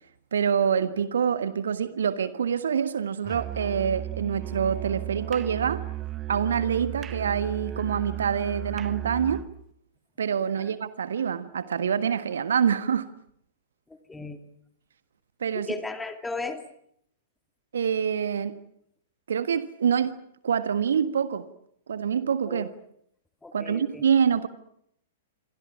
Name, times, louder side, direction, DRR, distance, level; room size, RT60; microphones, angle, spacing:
voice 1, 0.3-5.8 6.3-9.4 10.2-13.1 15.4-15.7 17.7-18.6 19.3-20.1 20.4-21.4 21.9-22.7 23.5-24.5, right 7 dB, 65° right, 1.5 m, -26 dB
Musical instrument, 3.2-9.6, right 12 dB, 25° right, 0.9 m, -35 dB
voice 2, 13.9-14.4 15.5-16.6 22.5-22.7 23.4-24.0, left 3 dB, 5° left, 2.5 m, -36 dB
28.0 x 25.5 x 6.0 m
figure-of-eight pair, 105°, 0 cm